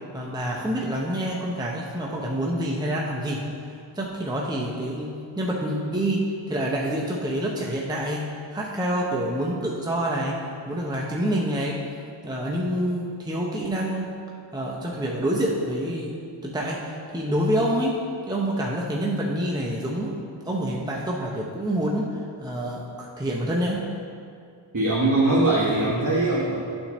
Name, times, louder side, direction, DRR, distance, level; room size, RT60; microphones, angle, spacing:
voice 1, 0.1-11.8 12.2-16.2 16.4-18.0 18.3-20.2 20.4-23.9, right 1 dB, 10° right, -3 dB, 0.6 m, -27 dB
voice 2, 24.7-26.6, right 2 dB, 40° right, -7 dB, 1.2 m, -21 dB
11.5 x 4.4 x 3.0 m, 2.4 s
wide cardioid pair, 85°, 49 cm